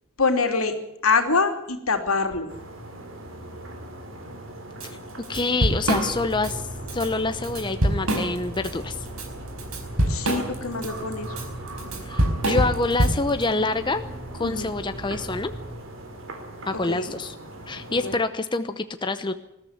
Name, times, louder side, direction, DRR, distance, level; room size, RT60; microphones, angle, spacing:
voice 1, 0.2-0.7 1.0-2.5 10.1-11.3 14.4-14.7 16.9-17.1 18.0-18.2, left 4 dB, 80° left, 5 dB, 3.0 m, -24 dB
sound 1, 2.5-18.2, right 1 dB, 60° right, 3.9 m, -41 dB
Drum kit / Drum, 4.8-4.9 5.2-6.5 6.9-7.1 7.4-8.7 9.1-13.4, right 1 dB, 80° right, 4.9 m, -24 dB
voice 2, 5.3-9.0 12.0-14.0 14.3-15.5 16.7-17.3 17.7-19.3, left 3 dB, 20° left, 8 dB, 0.8 m, -26 dB
sound 2, 5.9-15.7, right 1 dB, 5° right, 4.2 m, -39 dB
20.5 x 14.0 x 9.4 m, 0.85 s
head